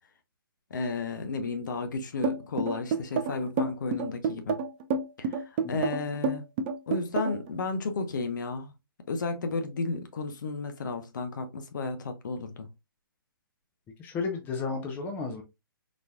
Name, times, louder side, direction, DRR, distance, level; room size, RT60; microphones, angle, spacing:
voice 1, 0.7-4.6 5.2-6.5 6.9-8.7 9.1-12.7, left 3 dB, 55° left, 0.7 m, -33 dB
sound 1, 2.2-7.5, right 5 dB, 30° right, 0.4 m, -29 dB
voice 2, 14.0-15.4, left 4 dB, 15° left, 0.7 m, -33 dB
4.1 x 3.0 x 2.3 m
figure-of-eight pair, 135°, 12 cm